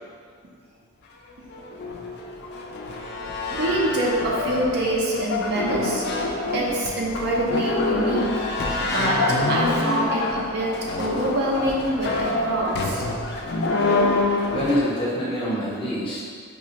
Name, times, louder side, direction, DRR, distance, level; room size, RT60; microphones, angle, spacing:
sound 1, 1.3-14.8, left 2 dB, 50° left, 0.4 m, -26 dB
voice 1, 3.5-6.1 6.5-8.4 8.8-13.0, right 1 dB, 50° right, -3 dB, 0.5 m, -25 dB
voice 2, 14.5-16.3, equal, 25° left, -8 dB, 0.8 m, -26 dB
4.8 x 2.1 x 2.8 m, 2.1 s
head